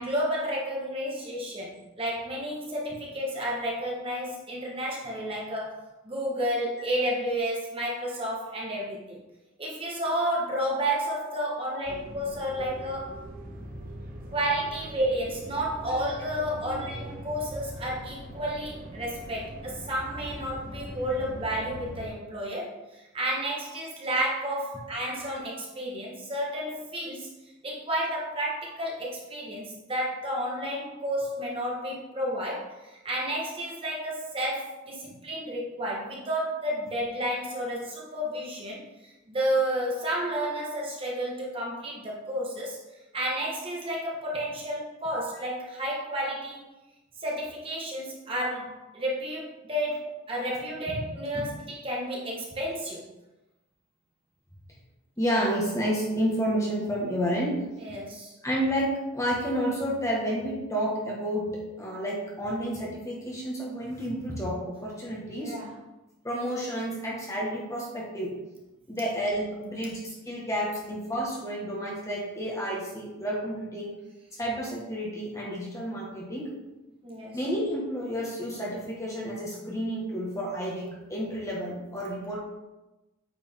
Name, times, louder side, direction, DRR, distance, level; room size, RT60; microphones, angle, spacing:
voice 1, 0.0-9.2 9.6-13.2 14.3-46.6 47.2-53.1 57.8-58.3 65.3-65.7 77.0-77.4, right 1 dB, 25° right, -3 dB, 1.4 m, -31 dB
voice 2, 11.4-11.8 15.9-16.0 16.6-16.8 35.1-35.2 50.9-51.0 55.2-57.6 58.4-65.5 66.2-68.3 68.9-73.9 74.3-76.5 77.3-82.4, equal, 15° left, -4 dB, 1.6 m, -30 dB
sound 1, 11.8-22.1, right 1 dB, 40° right, 1.2 m, -42 dB
9.0 x 5.2 x 3.7 m, 1.0 s
head